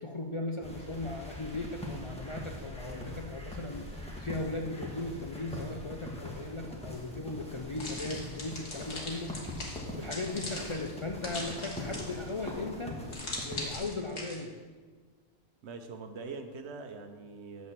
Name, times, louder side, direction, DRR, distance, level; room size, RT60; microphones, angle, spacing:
voice 1, 0.0-9.3 10.0-12.9 13.4-14.5, left 2 dB, 45° left, 2 dB, 0.4 m, -37 dB
sound 1, 0.6-13.8, left 1 dB, 5° left, 1.2 m, -42 dB
sound 2, 7.8-12.4 13.1-14.4, left 2 dB, 90° left, 1.8 m, -40 dB
voice 2, 9.9-10.4 15.6-17.7, right 4 dB, 75° right, 6 dB, 1.0 m, -44 dB
8.6 x 4.2 x 6.7 m, 1.5 s
omnidirectional pair, 1.2 m